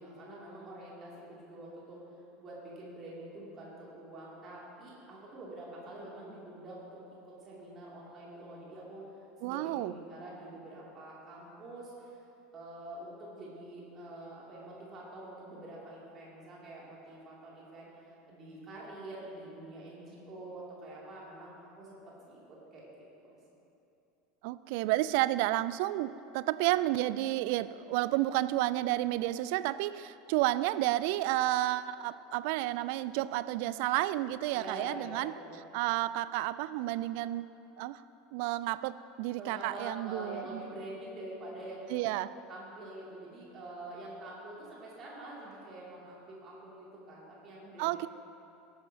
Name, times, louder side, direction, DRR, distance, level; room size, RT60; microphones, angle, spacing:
voice 1, 0.0-2.1 2.4-7.0 7.2-9.1 9.4-12.2 12.5-23.4 34.5-35.6 39.3-42.1 42.5-48.1, right 1 dB, 35° right, -6 dB, 2.8 m, -46 dB
voice 2, 9.4-9.9 24.4-35.3 35.7-37.5 37.8-38.0 38.3-40.6 41.9-42.3 47.8-48.1, right 16 dB, 55° right, 16 dB, 0.3 m, -31 dB
18.5 x 10.0 x 2.9 m, 2.8 s
figure-of-eight pair, 75°, 0 cm